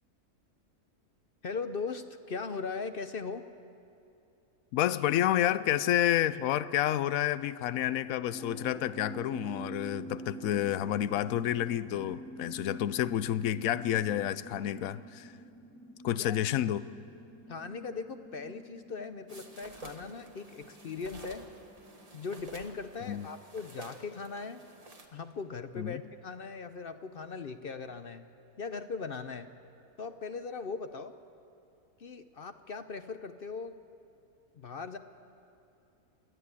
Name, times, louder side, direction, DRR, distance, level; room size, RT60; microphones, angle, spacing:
voice 1, 1.4-3.4 16.1-16.4 17.5-21.5 22.1-24.7 25.1-28.3 28.6-29.5 30.0-31.1 32.0-33.8 34.6-35.0, left 4 dB, 50° left, 10 dB, 0.7 m, -39 dB
voice 2, 4.7-15.3 16.0-16.8 23.1-23.3 25.8-26.0, left 12 dB, 70° left, 16 dB, 1.0 m, -29 dB
sound 1, 8.3-24.4, right 1 dB, 5° left, 0.5 m, -48 dB
sound 2, 19.3-25.1, right 3 dB, 25° right, 1.6 m, -50 dB
27.5 x 11.0 x 9.8 m, 2.6 s
omnidirectional pair, 1.6 m